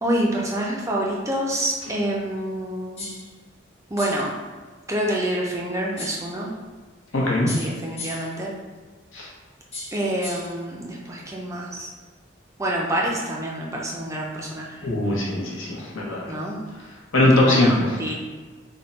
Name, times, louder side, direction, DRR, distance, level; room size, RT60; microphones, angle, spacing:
voice 1, 0.0-3.1 3.9-4.3 4.9-6.5 7.6-8.5 9.9-11.9 12.6-14.9 16.3-16.6 17.3-17.7 18.0-18.2, right 1 dB, 15° right, -3 dB, 0.4 m, -27 dB
sound 1, 3.0-3.3 4.0-4.3 6.0-6.3 7.5-8.4 9.7-10.6, left 3 dB, 30° left, 0.7 m, -36 dB
voice 2, 7.1-7.5 9.1-9.3 14.8-16.3 17.1-17.9, left 1 dB, 75° left, -3 dB, 0.8 m, -20 dB
3.5 x 2.1 x 3.9 m, 1.4 s
head